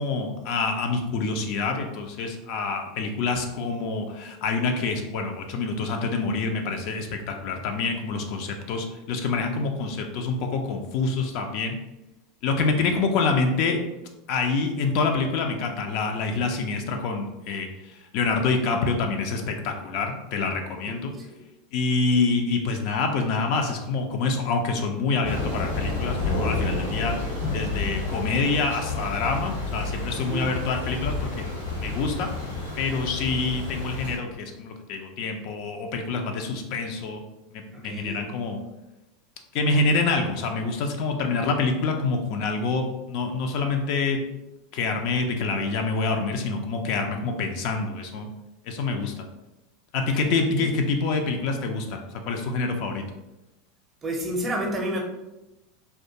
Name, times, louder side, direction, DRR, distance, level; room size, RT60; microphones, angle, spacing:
voice 1, 0.0-11.7 12.4-13.8 14.3-21.1 21.7-27.1 27.5-31.3 31.8-32.3 32.8-37.2 37.5-38.6 39.5-44.2 44.7-48.3 48.7-49.2 49.9-53.0, left 4 dB, 55° left, 4 dB, 0.3 m, -26 dB
voice 2, 20.9-21.4 30.3-30.5 37.7-38.2 50.0-50.7 54.0-55.0, right 1 dB, 25° right, 1 dB, 0.6 m, -31 dB
Thunder / Rain, 25.2-34.2, left 3 dB, 85° left, 1.1 m, -30 dB
2.3 x 2.2 x 2.7 m, 0.97 s
figure-of-eight pair, 80°, 0 cm